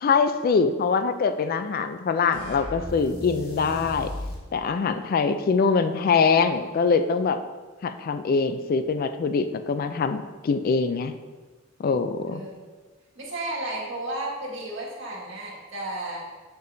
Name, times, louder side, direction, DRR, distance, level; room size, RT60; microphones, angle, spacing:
voice 1, 0.0-4.1 4.5-7.4 7.8-11.1 11.8-12.4, left 5 dB, 45° left, 10 dB, 0.3 m, -23 dB
sound 1, 2.3-4.5, left 1 dB, 85° left, 1.4 m, -36 dB
voice 2, 13.2-16.2, right 1 dB, 65° right, -4 dB, 1.8 m, -33 dB
6.8 x 6.5 x 2.6 m, 1.3 s
head